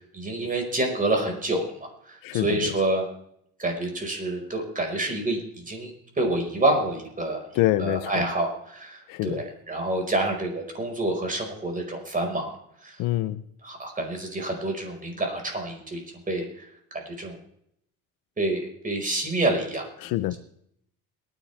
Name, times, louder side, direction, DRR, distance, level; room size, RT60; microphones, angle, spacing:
voice 1, 0.1-3.1 3.6-12.5 12.8-13.0 13.6-17.4 18.4-19.9, right 2 dB, 25° right, 3 dB, 5.0 m, -28 dB
voice 2, 2.2-2.6 7.5-8.2 9.1-9.4 13.0-13.4 20.0-20.3, left 16 dB, 80° left, 12 dB, 0.7 m, -25 dB
22.5 x 10.0 x 3.5 m, 0.72 s
cardioid pair, 100°, 33 cm